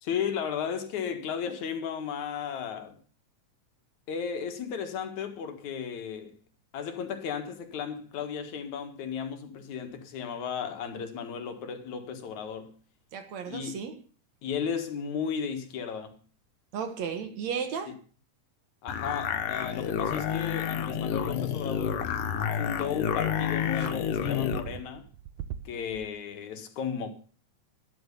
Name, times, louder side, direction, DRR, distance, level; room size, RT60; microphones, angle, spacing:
voice 1, 0.0-3.0 4.1-6.3 6.7-12.7 13.5-13.7 14.4-16.2 18.8-22.1 22.5-25.1 25.6-27.1, left 7 dB, 65° left, 2.9 m, -34 dB
voice 2, 13.1-14.0 16.7-18.0, right 7 dB, 65° right, 2.6 m, -34 dB
sound 1, 18.9-24.7, left 8 dB, 90° left, 2.8 m, -29 dB
sound 2, 23.7-26.1, right 9 dB, 80° right, 2.5 m, -41 dB
12.5 x 11.5 x 6.8 m
omnidirectional pair, 3.7 m